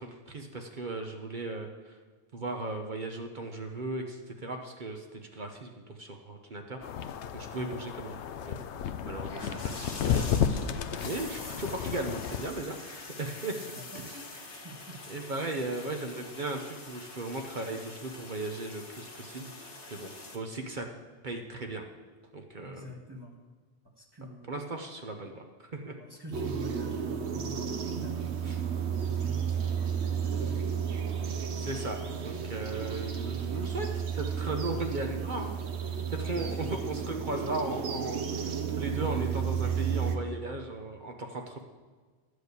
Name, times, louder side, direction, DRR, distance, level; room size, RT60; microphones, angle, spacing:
voice 1, 0.0-2.0 2.3-6.9 7.3-8.6 9.1-13.5 14.1-14.2 15.1-20.8 21.2-21.8 22.3-22.9 24.5-25.4 25.7-26.0 28.5-28.6 31.6-35.5 36.1-38.2 38.7-41.6, right 2 dB, 45° right, 3 dB, 0.9 m, -37 dB
sound 1, 6.8-12.5, left 8 dB, 80° left, 0.9 m, -32 dB
sound 2, 9.3-20.4, left 3 dB, 50° left, 1.3 m, -45 dB
voice 2, 13.7-15.0 22.6-23.3 24.0-24.7 25.9-30.6 36.3-36.7, equal, 20° right, -1 dB, 1.3 m, -46 dB
sound 3, 26.3-40.2, right 7 dB, 70° right, 1.1 m, -32 dB
11.5 x 4.9 x 8.1 m, 1.4 s
omnidirectional pair, 1.2 m